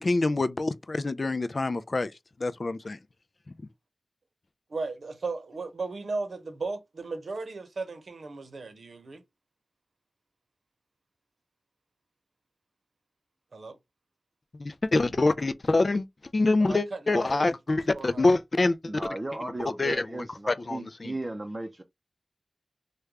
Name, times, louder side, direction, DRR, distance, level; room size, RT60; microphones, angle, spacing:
voice 1, 0.0-2.1 2.4-3.0 14.6-16.0 16.3-18.8 19.8-20.0 20.5-20.8, left 2 dB, 55° left, 0.3 m, -25 dB
voice 2, 4.7-9.2 13.5-13.8 16.6-18.3, right 3 dB, 80° right, 0.8 m, -36 dB
voice 3, 18.8-21.8, right 1 dB, 35° right, 0.5 m, -35 dB
3.2 x 2.2 x 3.5 m
cardioid pair, 50°, 0 cm